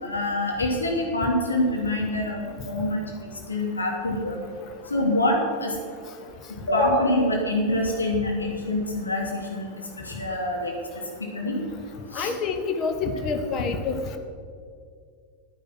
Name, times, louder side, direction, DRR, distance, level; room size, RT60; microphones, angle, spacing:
voice 1, 0.0-3.0 3.5-4.4 4.9-5.8 6.7-9.7 10.0-11.6 12.1-12.3, left 1 dB, 75° left, -1 dB, 2.7 m, -25 dB
voice 2, 12.1-14.0, left 4 dB, 30° left, 6 dB, 1.3 m, -27 dB
10.0 x 9.9 x 6.2 m, 2.3 s
figure-of-eight pair, 90°, 0 cm